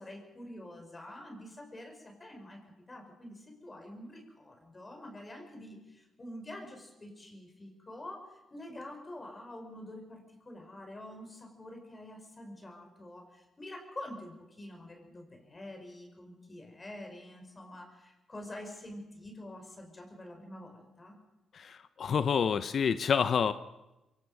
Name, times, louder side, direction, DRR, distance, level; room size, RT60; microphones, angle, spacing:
voice 1, 0.0-2.6 2.9-21.2, left 1 dB, 30° left, 3 dB, 5.0 m, -47 dB
voice 2, 21.5-23.5, left 7 dB, 60° left, 12 dB, 0.7 m, -28 dB
22.5 x 18.0 x 6.6 m, 1.0 s
supercardioid pair, 60°, 0 cm